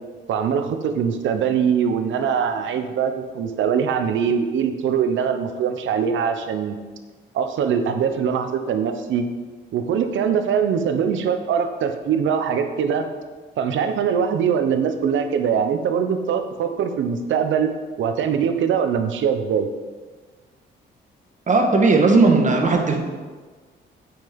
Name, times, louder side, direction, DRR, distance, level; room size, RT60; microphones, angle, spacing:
voice 1, 0.3-6.8 7.3-9.2 9.7-13.1 13.6-17.7 18.0-19.7, right 7 dB, 75° right, 7 dB, 0.9 m, -22 dB
voice 2, 21.5-23.0, right 3 dB, 40° right, 3 dB, 1.6 m, -16 dB
8.9 x 5.7 x 5.3 m, 1.4 s
cardioid pair, 90°, 20 cm